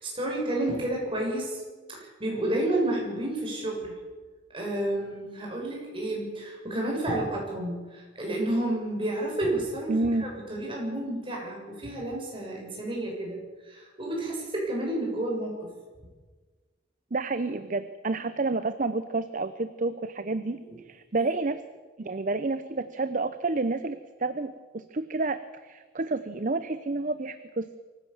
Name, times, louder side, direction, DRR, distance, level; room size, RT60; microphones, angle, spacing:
voice 1, 0.0-1.6 1.9-3.9 4.5-15.7 20.7-20.8 21.1-21.3, right 1 dB, 30° right, -1 dB, 7.4 m, -31 dB
voice 2, 9.9-10.3 17.1-21.6 22.0-27.8, right 3 dB, 45° right, 12 dB, 0.7 m, -30 dB
24.5 x 16.0 x 7.3 m, 1.4 s
head